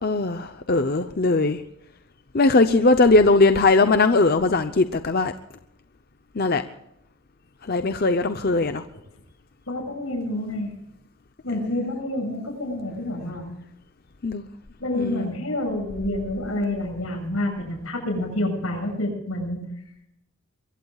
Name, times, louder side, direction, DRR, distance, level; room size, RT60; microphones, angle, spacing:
voice 1, 0.0-1.6 2.3-5.3 6.4-6.6 7.6-8.8 11.5-11.9 14.2-14.5 14.9-15.3, left 3 dB, 45° left, 9 dB, 0.7 m, -20 dB
voice 2, 9.7-10.7 11.4-13.5 14.8-19.6, left 1 dB, 85° left, 2 dB, 7.2 m, -28 dB
23.0 x 22.5 x 2.4 m, 0.80 s
head